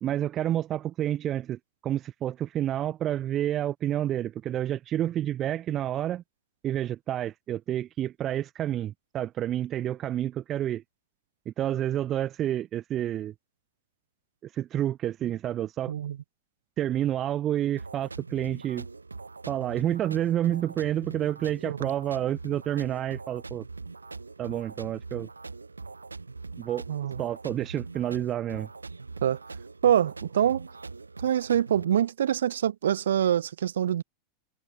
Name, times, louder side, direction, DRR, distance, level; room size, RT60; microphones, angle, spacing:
voice 1, 0.0-6.2 6.6-10.8 11.4-13.3 14.5-15.9 16.8-18.9 19.5-23.6 24.4-25.3 26.6-26.8 27.2-28.7, right 11 dB, 30° right, 1.4 m, -29 dB
sound 1, 17.8-31.8, right 3 dB, 80° right, 2.4 m, -42 dB
voice 2, 26.9-27.2 29.2-29.4 29.8-30.7 31.2-34.0, right 10 dB, 65° right, 0.9 m, -25 dB
figure-of-eight pair, 90°, 0 cm